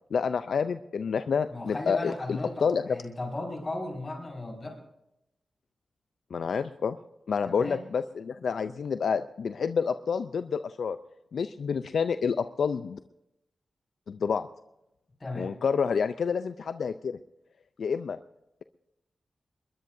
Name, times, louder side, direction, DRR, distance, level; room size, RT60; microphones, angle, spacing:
voice 1, 0.1-3.0 6.3-7.0 7.3-11.0 11.3-13.0 14.1-14.5 15.4-17.2 17.8-18.2, left 6 dB, 75° left, 11 dB, 0.4 m, -28 dB
voice 2, 1.5-4.8 7.4-7.8 15.2-15.5, left 2 dB, 40° left, -1 dB, 5.5 m, -36 dB
21.0 x 21.0 x 2.7 m, 0.87 s
cardioid pair, 60°, 0 cm